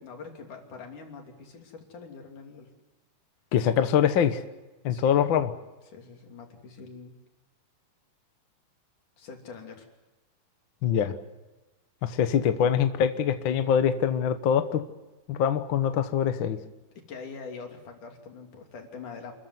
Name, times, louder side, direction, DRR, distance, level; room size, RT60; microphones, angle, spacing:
voice 1, 0.0-2.7 4.9-5.2 5.9-7.2 9.2-9.9 12.0-12.1 17.1-19.3, left 5 dB, 80° left, 3 dB, 4.4 m, -44 dB
voice 2, 3.5-4.4 4.8-5.5 10.8-11.1 12.0-14.8 15.3-16.6, left 8 dB, 55° left, 9 dB, 1.4 m, -24 dB
28.0 x 14.5 x 9.6 m, 1.1 s
omnidirectional pair, 3.5 m